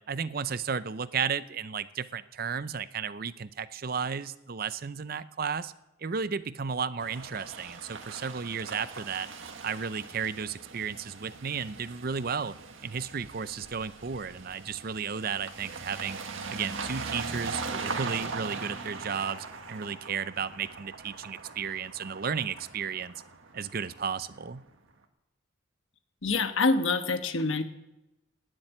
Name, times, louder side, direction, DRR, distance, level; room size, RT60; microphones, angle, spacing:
voice 1, 0.1-5.7 6.0-9.3 9.6-12.6 12.8-16.2 16.5-23.1 23.5-24.6, right 6 dB, 45° right, 15 dB, 0.6 m, -33 dB
sound 1, 7.0-24.6, right 4 dB, 75° right, 1.6 m, -40 dB
voice 2, 26.2-27.6, left 3 dB, 75° left, 8 dB, 1.2 m, -26 dB
17.5 x 7.5 x 9.9 m, 1.0 s
head